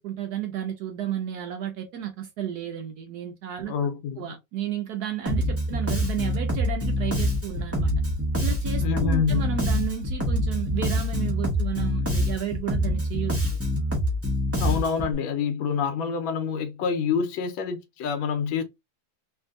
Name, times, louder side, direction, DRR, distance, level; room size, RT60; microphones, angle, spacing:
voice 1, 0.0-3.7 4.2-7.9 8.4-13.6, right 10 dB, 70° right, 1.0 m, -32 dB
voice 2, 3.6-4.2 8.8-9.5 14.6-18.6, left 6 dB, 85° left, 1.5 m, -27 dB
Bass guitar, 5.2-15.1, equal, 15° right, 0.4 m, -26 dB
sound 1, 6.6-14.5, left 2 dB, 45° right, 1.5 m, -37 dB
3.4 x 2.6 x 2.5 m
omnidirectional pair, 2.1 m